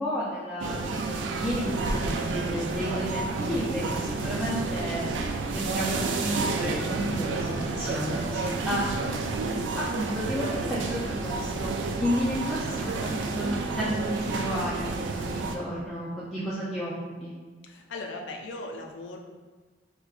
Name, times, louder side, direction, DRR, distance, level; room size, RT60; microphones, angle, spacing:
voice 1, 0.0-5.1 5.5-9.4 9.7-11.7 12.0-16.9 17.2-17.3, equal, ahead, -11 dB, 0.4 m, -32 dB
sound 1, 0.6-15.5, right 3 dB, 80° right, 0.3 m, -30 dB
voice 2, 17.6-19.2, left 2 dB, 85° left, 2 dB, 0.4 m, -38 dB
4.3 x 2.2 x 2.4 m, 1.3 s
head